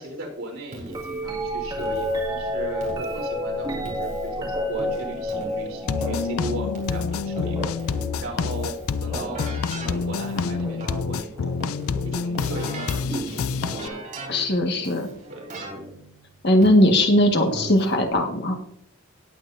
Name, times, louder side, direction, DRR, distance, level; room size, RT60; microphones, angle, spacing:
voice 1, 0.0-11.6 12.0-14.0 14.8-15.0 15.3-15.8, right 1 dB, 75° right, -1 dB, 3.5 m, -37 dB
Keyboard (musical), 0.7-18.1, right 1 dB, 35° right, 3.2 m, -39 dB
sound 1, 0.9-11.0 11.9-12.4 13.1-14.1 15.9-16.0, equal, 20° right, 2.2 m, -31 dB
sound 2, 5.9-13.9, left 5 dB, 80° left, 0.4 m, -28 dB
voice 2, 14.3-15.1 16.4-18.6, left 1 dB, 50° left, 3 dB, 1.6 m, -19 dB
18.0 x 8.4 x 2.7 m, 0.73 s
head